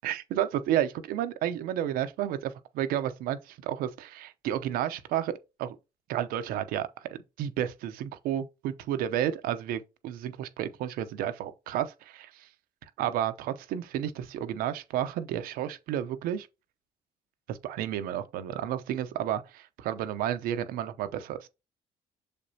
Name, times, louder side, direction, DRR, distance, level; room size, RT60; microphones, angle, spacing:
voice 1, 0.0-5.3 5.6-5.8 6.1-12.5 13.0-16.5 17.5-21.5, right 11 dB, 75° right, 0.8 m, -31 dB
6.7 x 5.1 x 2.8 m
hypercardioid pair, 60°, 15 cm